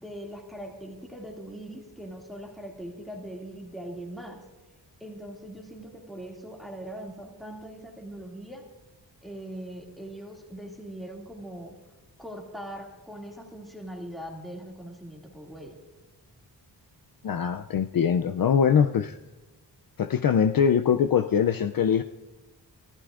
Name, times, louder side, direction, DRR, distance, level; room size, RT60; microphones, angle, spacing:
voice 1, 0.0-4.4 5.0-8.6 9.2-11.7 12.2-15.8, right 1 dB, ahead, 0 dB, 2.3 m, -41 dB
voice 2, 17.2-19.2 20.0-22.0, left 7 dB, 55° left, 8 dB, 0.5 m, -22 dB
25.0 x 14.5 x 2.5 m, 1.1 s
wide cardioid pair, 155°, 41 cm